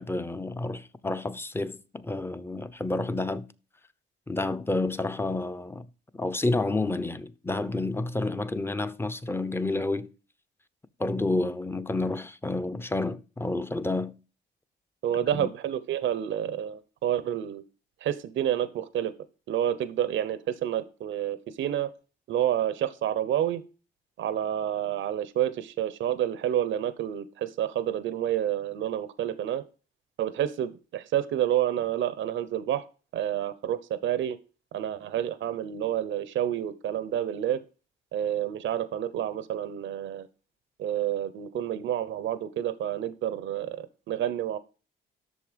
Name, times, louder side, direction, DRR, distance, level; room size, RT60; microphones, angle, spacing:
voice 1, 0.0-3.5 4.3-5.9 6.1-10.1 11.0-14.2 15.3-15.5, left 2 dB, 10° left, 0.9 m, -30 dB
voice 2, 15.0-17.6 18.0-19.1 19.5-21.9 22.3-23.6 24.2-29.6 30.2-32.8 33.1-34.4 34.7-37.6 38.1-40.3 40.8-44.6, right 11 dB, 75° right, 0.9 m, -29 dB
11.0 x 6.8 x 5.1 m
cardioid pair, 90°, 20 cm